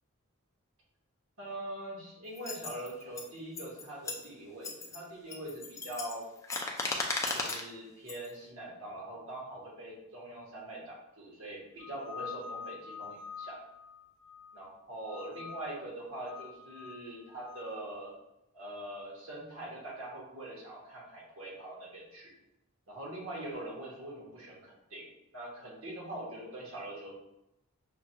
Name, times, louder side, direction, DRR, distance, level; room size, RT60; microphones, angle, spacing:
voice 1, 1.4-6.2 7.3-13.6 14.5-18.1 18.5-22.3 22.9-25.0 25.3-27.1, right 1 dB, 65° right, -4 dB, 1.2 m, -43 dB
sound 1, 2.4-3.3 3.6-4.3 4.6-5.0 5.3-7.7 8.1-8.3, left 3 dB, 15° left, 0.3 m, -35 dB
sound 2, 11.8-14.7 15.1-15.8 16.2-17.7, left 6 dB, 85° left, 0.3 m, -46 dB
5.7 x 2.2 x 2.8 m, 0.86 s
head